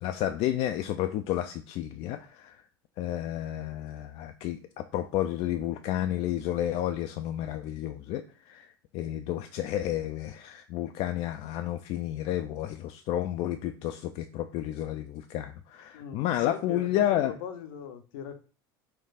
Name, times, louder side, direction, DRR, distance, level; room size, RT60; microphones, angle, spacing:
voice 1, 0.0-2.6 3.0-8.7 8.9-17.3, left 12 dB, 50° left, 8 dB, 0.4 m, -31 dB
voice 2, 15.9-18.4, left 8 dB, 70° left, 8 dB, 0.8 m, -40 dB
4.3 x 2.3 x 4.0 m, 0.37 s
hypercardioid pair, 80°, 12 cm